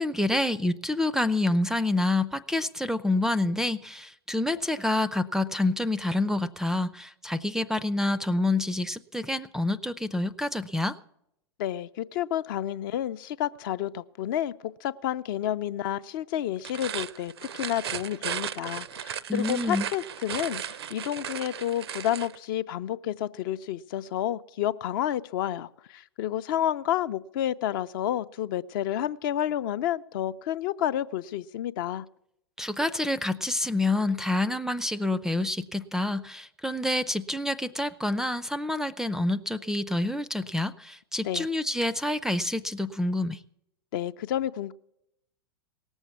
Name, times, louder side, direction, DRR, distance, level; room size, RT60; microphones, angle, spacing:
voice 1, 0.0-11.0 19.3-19.9 32.6-43.4, left 2 dB, 5° right, 0.4 m, -27 dB
voice 2, 11.6-32.1 41.2-41.5 43.9-44.7, left 11 dB, 50° left, 0.5 m, -30 dB
sound 1, 16.6-22.4, right 9 dB, 70° right, 0.5 m, -36 dB
18.0 x 7.2 x 7.0 m
figure-of-eight pair, 100°, 14 cm